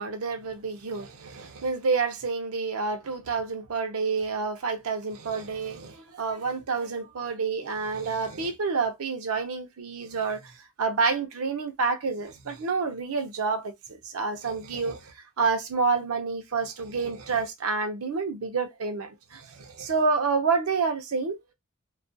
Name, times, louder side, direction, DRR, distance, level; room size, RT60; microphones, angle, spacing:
voice 1, 0.0-10.5 10.8-21.5, right 4 dB, 80° right, 0.6 m, -29 dB
2.3 x 2.2 x 2.6 m
head